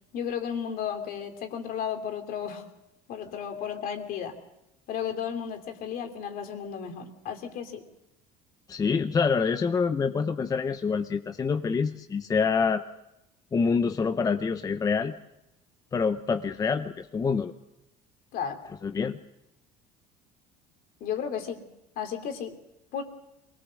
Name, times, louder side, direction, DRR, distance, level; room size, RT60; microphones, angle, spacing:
voice 1, 0.1-2.6 3.1-4.3 4.9-7.8 18.3-18.6 21.0-21.6 22.0-22.6 22.9-23.0, left 8 dB, 60° left, 6 dB, 2.8 m, -33 dB
voice 2, 8.7-12.8 13.5-15.1 15.9-17.5 18.8-19.2, left 5 dB, 20° left, 8 dB, 0.7 m, -26 dB
23.5 x 19.0 x 6.3 m, 0.88 s
cardioid pair, 125°, 17 cm